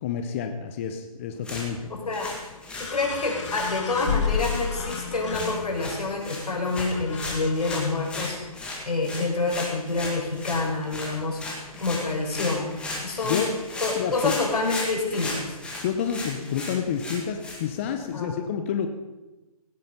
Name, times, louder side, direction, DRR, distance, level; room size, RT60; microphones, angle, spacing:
voice 1, 0.0-1.9 13.2-13.6 13.9-14.4 15.8-18.9, left 7 dB, 20° left, 6 dB, 0.7 m, -29 dB
sound 1, 1.3-18.1, left 2 dB, 5° left, 1.9 m, -37 dB
voice 2, 1.9-2.3 2.8-8.4 8.9-11.4 11.8-12.7 13.0-13.4 13.8-15.6 18.1-18.3, left 3 dB, 85° left, 1 dB, 5.4 m, -27 dB
sound 2, 2.1-2.2 2.7-6.0 6.9-7.9, left 6 dB, 50° left, 2.1 m, -31 dB
17.5 x 10.0 x 5.4 m, 1.1 s
hypercardioid pair, 165°, 19 cm